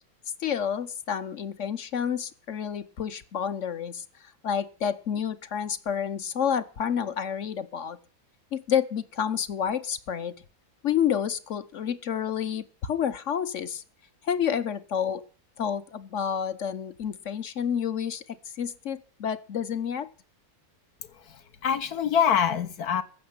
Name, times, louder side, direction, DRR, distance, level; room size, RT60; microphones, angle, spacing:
voice 1, 0.4-4.0 4.4-8.0 8.5-10.3 10.8-13.8 14.2-15.3 15.6-20.1, left 8 dB, 55° left, 1.2 m, -29 dB
voice 2, 21.1-23.0, left 8 dB, 70° left, 1.5 m, -25 dB
15.0 x 6.6 x 9.7 m
omnidirectional pair, 1.7 m